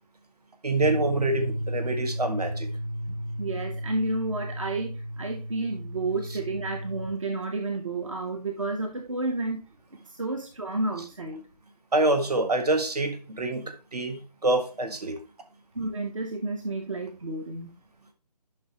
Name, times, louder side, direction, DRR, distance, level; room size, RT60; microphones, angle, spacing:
voice 1, 0.6-2.7 11.9-15.2, right 2 dB, 65° right, 1.8 m, -26 dB
sound 1, 0.8-7.1, equal, 20° left, 0.4 m, -34 dB
voice 2, 3.0-9.6 10.1-11.5 15.7-17.7, right 2 dB, 50° right, 1.0 m, -31 dB
10.0 x 5.8 x 3.0 m
hypercardioid pair, 180°, 21 cm